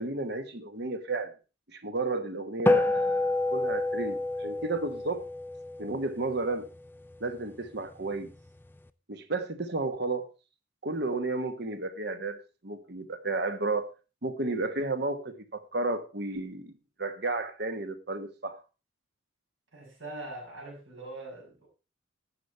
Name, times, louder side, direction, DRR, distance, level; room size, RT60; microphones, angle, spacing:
voice 1, 0.0-1.4 1.7-5.2 5.8-6.7 7.2-8.3 9.1-10.3 10.8-13.9 14.2-16.7 17.0-18.6, right 2 dB, 55° right, 1.3 m, -32 dB
sound 1, 2.7-7.3, left 2 dB, 10° left, 0.4 m, -29 dB
voice 2, 19.7-21.7, right 2 dB, 80° right, 5.9 m, -42 dB
12.0 x 8.2 x 4.3 m
head